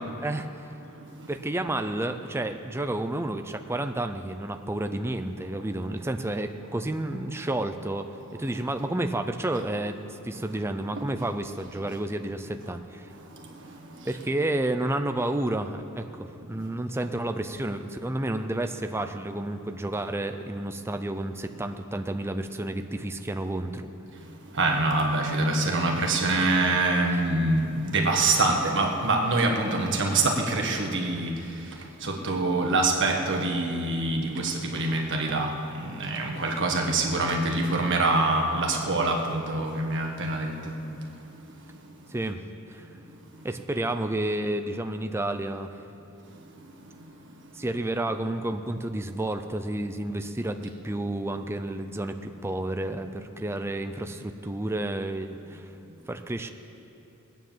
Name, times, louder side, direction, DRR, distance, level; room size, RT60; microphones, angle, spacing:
voice 1, 0.2-0.7 1.3-8.1 8.4-10.0 10.2-13.1 14.1-23.9 27.1-27.2 42.1-42.4 42.7-42.9 43.4-45.7 47.5-55.7 56.1-56.5, right 1 dB, 10° right, 7 dB, 0.6 m, -30 dB
voice 2, 24.5-31.4 32.0-35.5 35.8-40.8, right 2 dB, 55° right, 2 dB, 1.7 m, -25 dB
18.5 x 9.3 x 7.4 m, 2.9 s
head